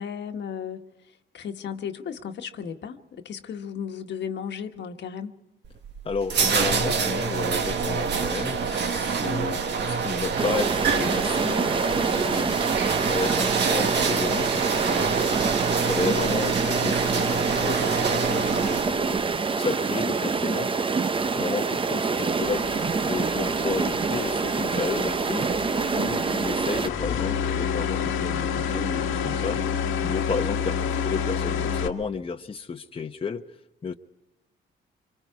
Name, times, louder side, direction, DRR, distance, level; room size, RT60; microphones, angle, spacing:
voice 1, 0.0-5.4 13.8-14.0 15.9-16.0, left 7 dB, 60° left, 1.4 m, -35 dB
sound 1, 5.6-19.2, right 5 dB, 60° right, 1.7 m, -26 dB
voice 2, 6.0-15.2 15.5-19.3 19.6-29.8 30.0-33.4 33.8-33.9, left 4 dB, 25° left, 0.9 m, -32 dB
sound 2, 10.4-26.9, right 4 dB, 25° right, 0.7 m, -26 dB
sound 3, 22.4-31.9, left 7 dB, 90° left, 1.6 m, -29 dB
26.0 x 23.5 x 4.8 m
cardioid pair, 90°, 20 cm